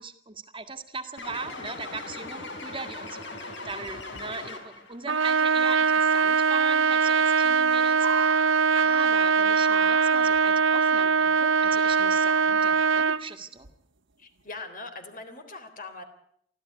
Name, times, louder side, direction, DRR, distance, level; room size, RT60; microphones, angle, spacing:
voice 1, 0.0-13.7, right 4 dB, 25° right, 8 dB, 2.0 m, -39 dB
sound 1, 1.2-5.0, left 2 dB, 65° left, 4.5 m, -39 dB
sound 2, 2.6-2.7 3.0-3.3 3.7-4.3 5.8-5.9 6.1-6.2 6.7-6.8 7.1-9.3 9.6-10.7 11.6-12.3 13.0-13.1 13.6-14.0 14.4-14.6, right 3 dB, 75° right, 1.5 m, -39 dB
Trumpet, 5.1-13.2, right 5 dB, 90° right, 0.9 m, -22 dB
voice 2, 14.2-16.0, left 3 dB, 45° left, 7 dB, 3.6 m, -42 dB
24.5 x 15.5 x 9.7 m, 0.71 s
head